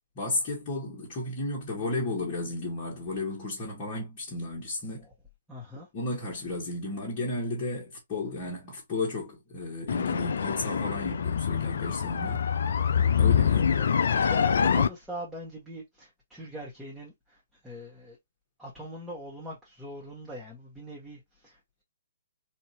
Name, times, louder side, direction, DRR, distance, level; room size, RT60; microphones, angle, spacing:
voice 1, 0.1-5.1 5.9-12.4 13.2-13.7, left 2 dB, 30° left, 1.7 m, -33 dB
voice 2, 5.5-5.9 13.4-18.2 18.6-21.6, equal, 5° right, 1.5 m, -42 dB
sound 1, 9.9-14.9, left 7 dB, 60° left, 0.4 m, -25 dB
4.3 x 2.8 x 2.9 m
figure-of-eight pair, 125°, 0 cm